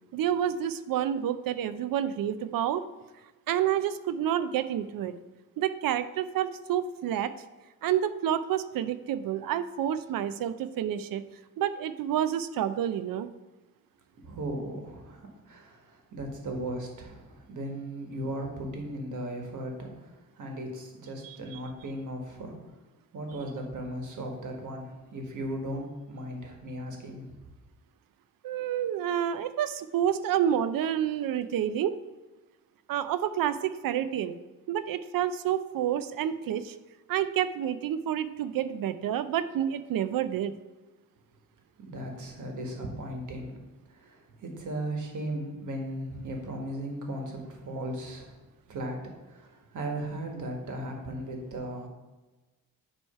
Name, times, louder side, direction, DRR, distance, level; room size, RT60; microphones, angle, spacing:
voice 1, 0.1-2.8 3.5-5.1 5.6-7.3 7.8-11.2 11.6-13.3 21.2-21.6 28.4-32.0 32.9-34.4 34.7-36.8 37.1-40.6, right 10 dB, 80° right, 12 dB, 0.5 m, -29 dB
voice 2, 14.2-22.7 23.1-27.3 41.8-43.6 43.9-48.4 48.7-51.9, right 1 dB, 60° right, 2 dB, 1.5 m, -37 dB
8.5 x 3.1 x 5.5 m, 1.2 s
cardioid pair, 125°, 34 cm